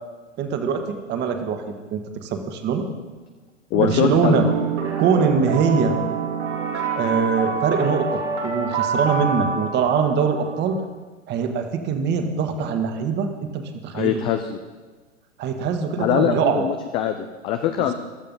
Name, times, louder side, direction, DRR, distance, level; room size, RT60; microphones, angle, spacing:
voice 1, 0.4-1.6 1.9-2.9 3.8-4.5 5.0-6.0 7.0-10.8 11.3-14.2 15.4-16.7 17.8-17.9, right 6 dB, 25° right, 6 dB, 1.7 m, -23 dB
voice 2, 3.7-4.5 13.9-14.6 16.0-17.9, left 11 dB, 15° left, 7 dB, 0.3 m, -23 dB
sound 1, 3.7-10.7, right 5 dB, 65° right, 3.0 m, -26 dB
15.0 x 12.0 x 5.5 m, 1.3 s
hypercardioid pair, 120°, 38 cm